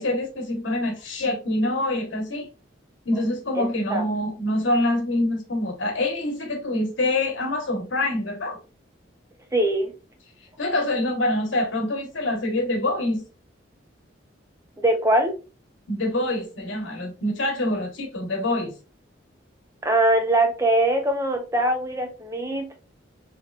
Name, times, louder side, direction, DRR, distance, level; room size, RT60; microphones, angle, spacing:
voice 1, 0.0-2.5 3.0-8.6 10.6-13.2 15.9-18.7, left 1 dB, 85° left, 1.2 m, -25 dB
voice 2, 9.5-9.9 14.8-15.3 19.8-22.7, right 1 dB, 15° right, 0.6 m, -22 dB
3.3 x 3.1 x 2.4 m
head